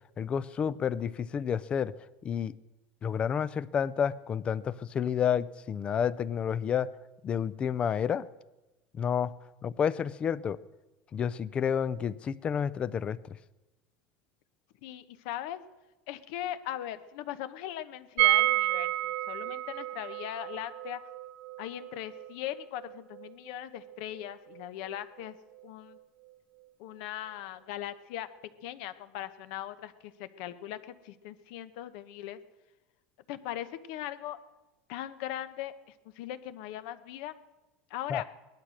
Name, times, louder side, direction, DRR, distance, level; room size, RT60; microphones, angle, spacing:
voice 1, 0.2-1.9 2.2-2.5 3.0-6.9 7.2-8.3 8.9-9.3 9.6-10.6 11.1-13.2 38.1-38.2, left 8 dB, 20° left, 18 dB, 0.4 m, -30 dB
voice 2, 14.8-15.6 16.1-21.0 21.6-25.4 25.6-26.0 26.8-28.3 28.6-32.4 33.3-34.4 34.9-37.3 37.9-38.2, left 12 dB, 65° left, 12 dB, 1.0 m, -39 dB
Steel Bell, 18.2-24.0 24.2-24.3 24.6-24.7, right 17 dB, 50° right, 0.5 m, -30 dB
18.0 x 12.0 x 6.4 m, 1.1 s
supercardioid pair, 160°, 5 cm